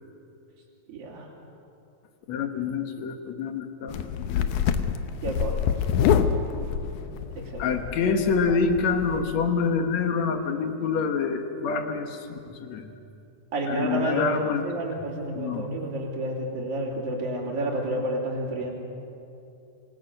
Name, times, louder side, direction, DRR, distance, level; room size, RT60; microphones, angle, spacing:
voice 1, 0.9-1.3 5.2-5.8 7.0-7.1 7.4-7.7 13.5-18.7, right 1 dB, 50° right, -3 dB, 3.9 m, -30 dB
voice 2, 2.3-4.7 7.6-12.9 13.7-14.8 15.3-15.7, left 5 dB, 65° left, 6 dB, 2.5 m, -27 dB
sound 1, 3.9-9.3, left 8 dB, 90° left, 2.4 m, -26 dB
26.0 x 19.5 x 6.7 m, 2.7 s
omnidirectional pair, 3.4 m